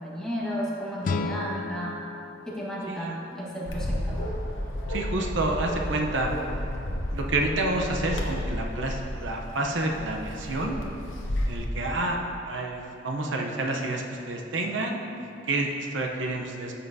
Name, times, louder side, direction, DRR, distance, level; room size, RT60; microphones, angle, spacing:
voice 1, 0.0-2.0 2.4-4.2, equal, 5° left, -6 dB, 1.4 m, -33 dB
sound 1, 1.0-4.0, left 3 dB, 45° left, 0.3 m, -35 dB
Bark, 3.7-11.6, equal, 85° left, 1.0 m, -32 dB
voice 2, 4.9-6.4 7.1-10.8 11.4-16.7, right 2 dB, 80° right, 1 dB, 0.8 m, -29 dB
13.0 x 5.6 x 2.7 m, 2.7 s
head